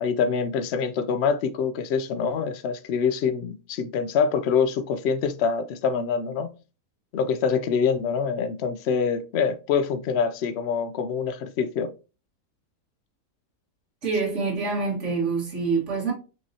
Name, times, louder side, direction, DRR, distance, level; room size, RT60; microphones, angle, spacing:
voice 1, 0.0-6.5 7.1-11.9, left 6 dB, 75° left, 0.6 m, -25 dB
voice 2, 14.0-16.1, right 4 dB, 50° right, 1.9 m, -26 dB
5.5 x 3.0 x 2.7 m
omnidirectional pair, 1.7 m